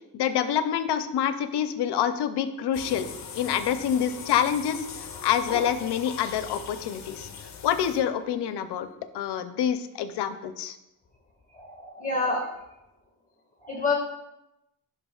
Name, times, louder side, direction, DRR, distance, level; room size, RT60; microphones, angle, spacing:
voice 1, 0.1-3.1 3.3-7.3 7.6-8.9 9.1-10.8, left 9 dB, 80° left, 11 dB, 0.6 m, -27 dB
sound 1, 2.7-8.3, left 5 dB, 45° left, 0.8 m, -40 dB
voice 2, 11.5-12.5 13.6-13.9, left 3 dB, 20° left, -1 dB, 1.8 m, -27 dB
10.0 x 5.9 x 2.3 m, 0.89 s
cardioid pair, 75°, 40 cm